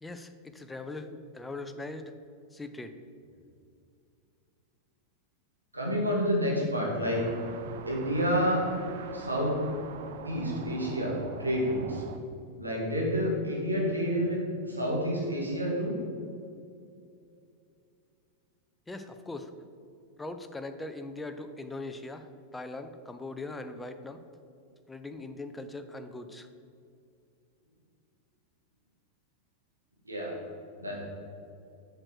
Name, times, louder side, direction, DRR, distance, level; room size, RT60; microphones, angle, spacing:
voice 1, 0.0-2.1 2.5-2.9 18.9-19.5 20.2-24.2 24.9-26.5, left 2 dB, 10° left, 8 dB, 0.6 m, -40 dB
voice 2, 5.7-7.3 7.8-8.6 9.1-9.6 10.2-11.1 11.4-12.0 12.6-16.0 30.1-30.3 30.8-31.0, equal, 80° right, -3 dB, 1.9 m, -29 dB
sound 1, 7.1-12.2, right 7 dB, 55° right, 0.5 m, -44 dB
7.5 x 6.5 x 4.5 m, 2.5 s
figure-of-eight pair, 90°, 0 cm